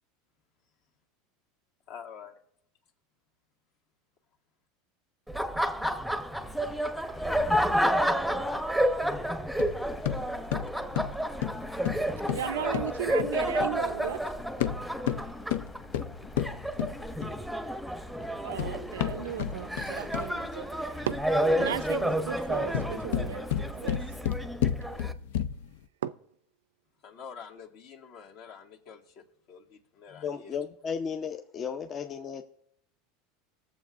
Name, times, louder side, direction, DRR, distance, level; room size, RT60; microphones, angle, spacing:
voice 1, 1.9-2.4 16.4-17.0 27.0-30.6, left 7 dB, 60° left, 1.9 m, -48 dB
Laughter, 5.3-25.1, equal, ahead, 0.8 m, -30 dB
sound 1, 6.4-24.2, left 3 dB, 20° left, 1.4 m, -49 dB
sound 2, 9.6-13.8 14.5-17.5 18.3-20.5 22.5-25.8, left 10 dB, 75° left, 0.5 m, -32 dB
voice 2, 12.3-14.2 18.4-20.7 21.1-23.4 23.7-24.0 26.0-26.1, right 9 dB, 85° right, 0.4 m, -35 dB
voice 3, 30.2-32.4, left 6 dB, 35° left, 0.6 m, -34 dB
19.5 x 7.2 x 2.5 m
hypercardioid pair, 105°, 0 cm